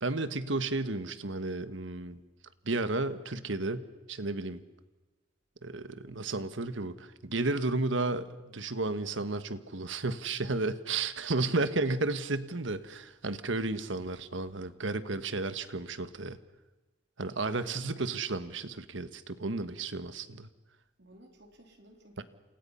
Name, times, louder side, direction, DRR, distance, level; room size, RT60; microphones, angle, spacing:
voice 1, 0.0-2.2 2.6-4.6 5.6-16.4 17.2-20.5 22.2-22.3, right 3 dB, 75° right, 12 dB, 1.4 m, -33 dB
voice 2, 11.5-11.9 17.5-18.0 21.0-22.2, right 1 dB, 60° right, 2 dB, 3.7 m, -54 dB
29.5 x 28.5 x 5.7 m, 1.2 s
head